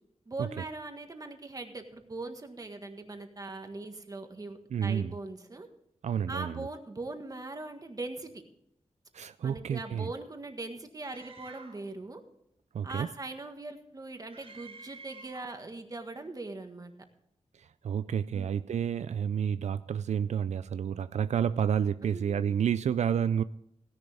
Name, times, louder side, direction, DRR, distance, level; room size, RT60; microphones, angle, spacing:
voice 1, 0.3-5.7 6.3-8.4 9.4-12.2 12.8-16.9 18.3-18.5 22.0-22.6, right 2 dB, 30° right, 6 dB, 1.6 m, -41 dB
voice 2, 4.7-5.1 6.0-6.7 9.1-10.1 12.7-13.1 17.5-23.4, right 8 dB, 80° right, 13 dB, 0.4 m, -30 dB
Screaming, 11.0-11.9 14.3-15.7, right 4 dB, 60° right, 3.4 m, -50 dB
16.5 x 10.5 x 3.5 m, 0.76 s
wide cardioid pair, 145°, 12 cm